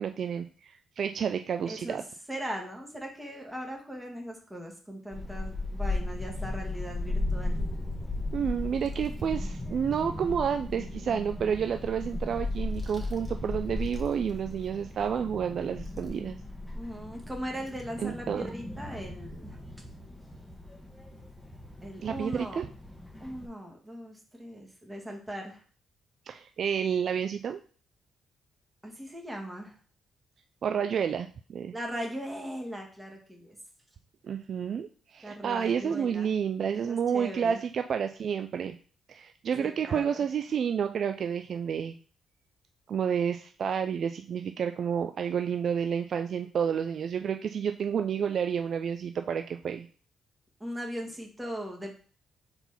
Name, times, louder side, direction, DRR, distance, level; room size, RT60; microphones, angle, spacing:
voice 1, 0.0-2.0 8.3-16.4 18.0-18.5 22.0-22.7 26.3-27.6 30.6-31.7 34.2-38.8 39.1-42.0 42.9-49.9, right 7 dB, 55° right, 7 dB, 0.4 m, -30 dB
voice 2, 1.7-2.0 2.3-7.7 16.7-19.6 21.8-22.6 23.2-25.6 28.8-29.8 31.7-33.6 35.2-36.3 36.8-37.6 39.6-40.2 50.6-52.0, equal, 10° right, 1 dB, 1.7 m, -39 dB
Child speech kid speaking / Wind, 5.1-23.5, left 2 dB, 5° left, 1.5 m, -36 dB
4.4 x 4.0 x 5.5 m, 0.41 s
cardioid pair, 90°, 0 cm